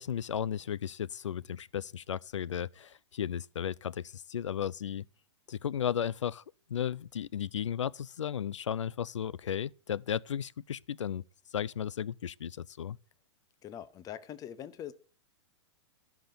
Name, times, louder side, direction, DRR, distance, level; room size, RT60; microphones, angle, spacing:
voice 1, 0.0-5.1 5.5-6.4 6.7-11.2 11.5-13.0, left 9 dB, 90° left, 0.4 m, -35 dB
voice 2, 13.6-14.9, left 10 dB, 25° left, 0.8 m, -43 dB
13.5 x 5.9 x 6.8 m
hypercardioid pair, 120°, 15 cm